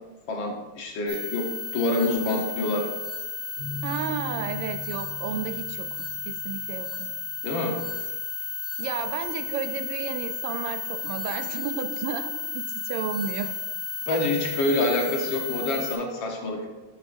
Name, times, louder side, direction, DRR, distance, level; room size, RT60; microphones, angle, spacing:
voice 1, 0.3-1.5 1.7-2.9 7.4-7.8 14.1-16.7, left 2 dB, 65° left, 2 dB, 1.9 m, -26 dB
sound 1, 1.1-15.9, left 4 dB, 60° right, 3.6 m, -33 dB
sound 2, 3.6-7.3, left 3 dB, 35° left, 2.9 m, -40 dB
voice 2, 3.8-7.1 8.8-13.5, right 8 dB, 85° right, 9 dB, 1.5 m, -32 dB
11.5 x 7.5 x 2.6 m, 1.2 s
omnidirectional pair, 2.4 m